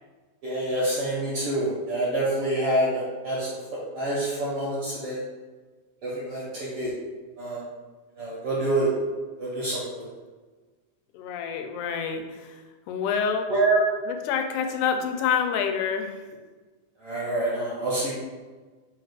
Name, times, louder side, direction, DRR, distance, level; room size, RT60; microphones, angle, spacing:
voice 1, 0.4-3.6 3.9-5.2 6.0-6.9 7.4-7.6 8.2-8.9 9.4-9.9 13.5-13.8 17.0-18.1, right 2 dB, 65° right, -6 dB, 1.4 m, -26 dB
voice 2, 11.1-12.6 12.9-13.5 14.1-16.2, left 7 dB, 90° left, 5 dB, 2.1 m, -27 dB
4.7 x 2.4 x 4.7 m, 1.3 s
omnidirectional pair, 3.5 m